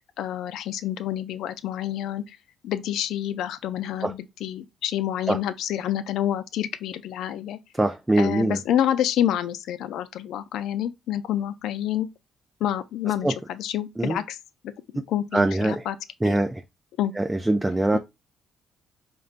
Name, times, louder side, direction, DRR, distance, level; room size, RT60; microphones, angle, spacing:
voice 1, 0.0-2.4 2.6-7.6 8.2-12.1 12.6-14.4 14.6-16.0 16.2-16.3 17.0-17.1 17.9-18.0, left 11 dB, 85° left, 0.4 m, -28 dB
voice 2, 7.8-8.6 13.2-13.3 14.0-14.2 15.3-15.9 16.2-16.6 17.2-18.0, right 2 dB, 10° right, 0.3 m, -22 dB
5.0 x 2.2 x 2.4 m
cardioid pair, 90°, 0 cm